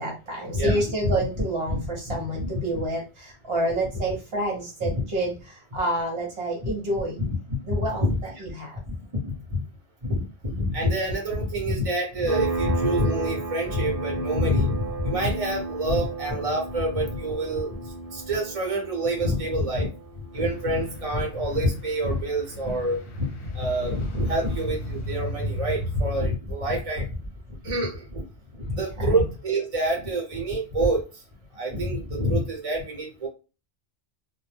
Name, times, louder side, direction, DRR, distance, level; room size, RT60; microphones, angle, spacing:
voice 1, 0.0-7.2 7.6-8.8 29.0-29.1, right 1 dB, 60° right, -1 dB, 1.0 m, -29 dB
voice 2, 0.5-1.8 2.1-2.8 4.8-5.0 6.6-6.7 7.2-7.3 7.7-8.2 8.9-9.6 10.0-17.8 18.1-19.9 20.3-27.2 27.6-28.2 28.6-31.0 31.6-33.3, equal, 35° right, -1 dB, 0.9 m, -27 dB
sound 1, 12.3-22.6, right 3 dB, 30° left, 0.4 m, -34 dB
sound 2, 20.3-26.4, left 1 dB, 60° left, 0.8 m, -35 dB
2.2 x 2.1 x 3.1 m, 0.31 s
omnidirectional pair, 1.2 m